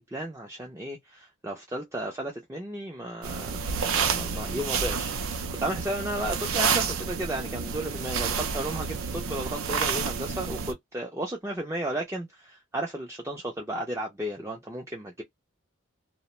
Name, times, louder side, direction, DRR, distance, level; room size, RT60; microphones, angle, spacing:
voice 1, 0.0-3.5 3.9-15.2, right 1 dB, 15° right, 0.4 m, -34 dB
sound 1, 3.2-10.7, right 6 dB, 80° right, 0.5 m, -29 dB
2.4 x 2.1 x 2.9 m
head